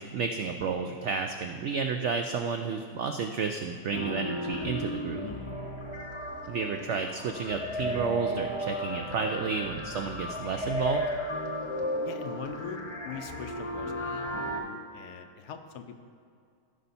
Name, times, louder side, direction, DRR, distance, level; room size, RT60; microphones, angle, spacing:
voice 1, 0.0-5.2 6.5-11.0, right 5 dB, 85° right, 5 dB, 0.6 m, -31 dB
sound 1, 3.9-14.6, equal, 25° left, 0.8 m, -34 dB
voice 2, 5.2-6.1 12.0-16.0, left 6 dB, 75° left, 7 dB, 1.2 m, -43 dB
14.5 x 5.6 x 4.1 m, 2.4 s
omnidirectional pair, 1.8 m